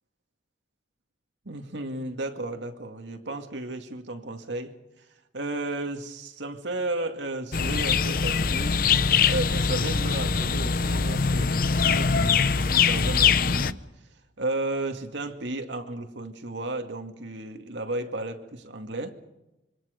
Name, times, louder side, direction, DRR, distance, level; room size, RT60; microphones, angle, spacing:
voice 1, 1.5-4.8 5.3-8.8 9.3-13.8 14.4-19.2, right 2 dB, 90° right, 2.2 m, -33 dB
sound 1, 7.5-13.7, left 6 dB, 50° left, 0.7 m, -23 dB
26.5 x 24.0 x 5.2 m
head